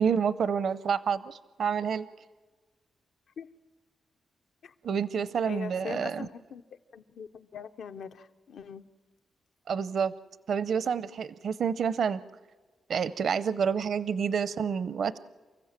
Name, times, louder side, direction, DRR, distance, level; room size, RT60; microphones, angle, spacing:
voice 1, 0.0-2.1 4.8-6.3 9.7-10.1 10.5-12.2 12.9-15.2, right 6 dB, 65° right, 15 dB, 0.6 m, -28 dB
voice 2, 5.5-6.6 6.9-8.8, left 6 dB, 70° left, 9 dB, 0.7 m, -41 dB
29.5 x 15.0 x 7.5 m, 1.3 s
cardioid pair, 105°, 0 cm